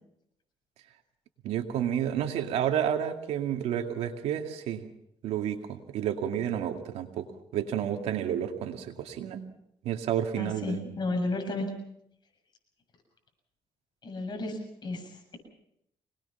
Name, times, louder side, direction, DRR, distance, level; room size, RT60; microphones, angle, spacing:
voice 1, 1.4-4.9 5.2-7.3 7.5-9.4 9.8-10.8, right 9 dB, 85° right, 5 dB, 2.3 m, -30 dB
voice 2, 10.4-11.7 14.0-15.0, left 2 dB, 45° left, 4 dB, 7.5 m, -32 dB
25.5 x 20.0 x 5.8 m, 0.77 s
cardioid pair, 90°, 11 cm